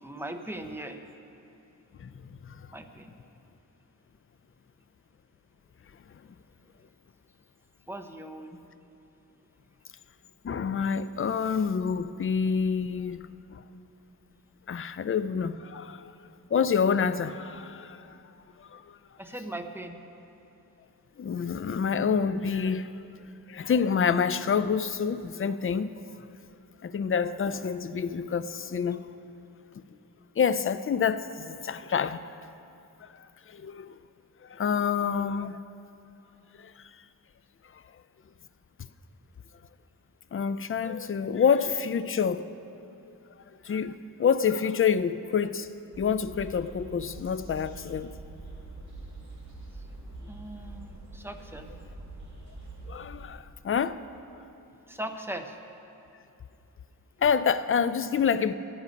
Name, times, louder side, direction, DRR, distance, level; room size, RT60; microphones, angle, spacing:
voice 1, 0.0-1.0 2.7-3.1 7.9-8.6 19.2-20.0 50.3-51.7 54.8-55.6, right 1 dB, 5° right, 5 dB, 0.7 m, -39 dB
voice 2, 10.4-13.6 14.7-16.0 16.5-18.2 18.6-19.0 21.2-22.9 23.5-25.9 26.8-29.0 30.4-32.3 33.0-34.0 34.4-35.6 36.6-36.9 40.3-42.5 43.6-45.7 46.0-48.1 52.9-54.0 57.2-58.5, left 6 dB, 35° left, 12 dB, 0.4 m, -27 dB
sound 1, 45.9-53.3, right 2 dB, 45° right, 2.1 m, -44 dB
13.0 x 10.5 x 5.2 m, 2.8 s
wide cardioid pair, 115°, 38 cm